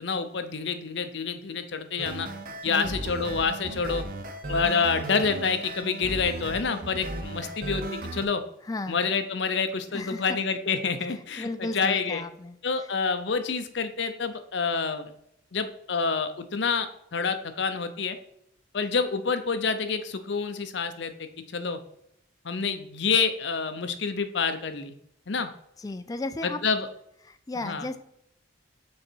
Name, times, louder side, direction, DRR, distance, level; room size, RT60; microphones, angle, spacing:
voice 1, 0.0-2.3 2.6-4.0 4.5-8.4 8.9-12.2 12.6-15.1 15.5-18.2 18.7-21.8 22.4-24.9 25.3-25.5 26.4-26.9 27.6-27.9, left 5 dB, 60° left, 8 dB, 0.7 m, -28 dB
sound 1, 2.0-8.2, right 2 dB, 45° right, 0.7 m, -36 dB
voice 2, 2.7-3.0 8.6-9.0 9.9-10.4 11.4-12.6 25.8-26.6 27.2-28.0, left 2 dB, 20° left, 10 dB, 0.4 m, -34 dB
6.3 x 4.1 x 4.5 m, 0.75 s
head